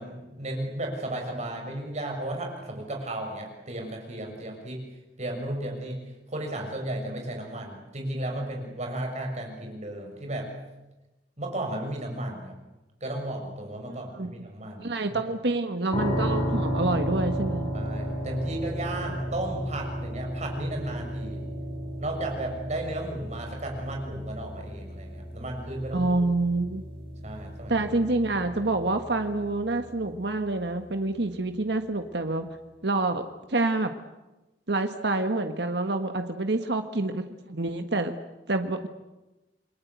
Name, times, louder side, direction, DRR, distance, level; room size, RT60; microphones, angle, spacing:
voice 1, 0.0-4.8 5.2-6.0 6.3-10.5 11.4-12.5 13.0-15.2 17.7-21.5 22.0-26.1 27.2-27.7, right 1 dB, 40° right, 2 dB, 6.6 m, -34 dB
voice 2, 13.9-14.3 14.8-17.7 25.9-26.8 27.7-32.5 32.8-33.9 34.7-38.1 38.5-38.9, right 2 dB, 70° right, 6 dB, 1.5 m, -27 dB
sound 1, 15.9-30.8, equal, 35° left, 6.2 m, -34 dB
28.5 x 21.5 x 8.3 m, 1.0 s
head